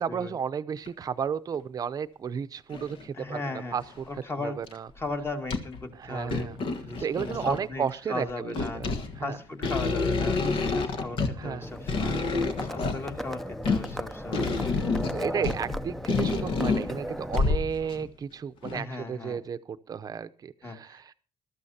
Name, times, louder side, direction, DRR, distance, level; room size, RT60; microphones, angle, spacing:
voice 1, 0.0-4.0 4.4-4.9 6.0-6.6 7.0-8.9 9.2-9.4 11.4-11.7 15.1-21.1, right 7 dB, 40° right, 13 dB, 0.7 m, -33 dB
sound 1, 0.9-1.0 1.5-1.6 2.7-3.1 3.7-4.2 4.7-4.8 5.1-5.8 6.2-7.7 8.3-18.1 18.6-18.8, left 4 dB, 65° left, 1.6 m, -29 dB
voice 2, 3.1-3.8 4.1-4.6 5.0-6.5 6.9-8.8 9.2-12.2 12.6-14.8 18.7-19.4 20.6-21.1, left 2 dB, 25° left, 5 dB, 2.1 m, -37 dB
Livestock farm animals working animals, 11.6-17.4, equal, ahead, 0.6 m, -37 dB
21.0 x 13.0 x 2.8 m, 0.37 s
cardioid pair, 130°, 10 cm